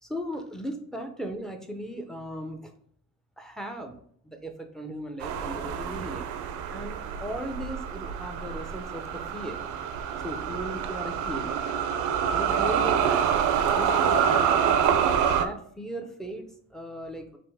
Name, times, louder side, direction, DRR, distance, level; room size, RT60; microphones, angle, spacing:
voice 1, 0.0-2.7 3.4-4.0 4.2-6.3 6.7-9.7 10.2-11.6 12.3-14.8 15.3-17.4, equal, ahead, 5 dB, 0.5 m, -37 dB
sound 1, 5.2-15.5, right 8 dB, 75° right, 0.5 m, -26 dB
5.1 x 3.1 x 3.4 m, 0.62 s
cardioid pair, 150°, 30 cm